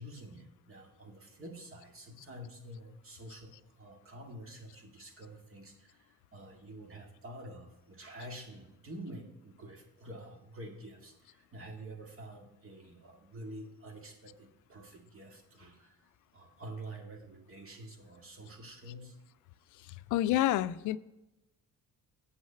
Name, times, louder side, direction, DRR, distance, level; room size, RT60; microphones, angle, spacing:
voice 1, 0.0-19.2, right 1 dB, 45° right, 3 dB, 2.0 m, -48 dB
voice 2, 20.1-21.0, left 13 dB, 80° left, 16 dB, 0.4 m, -28 dB
8.2 x 6.4 x 5.6 m, 0.96 s
cardioid pair, 90°, 30 cm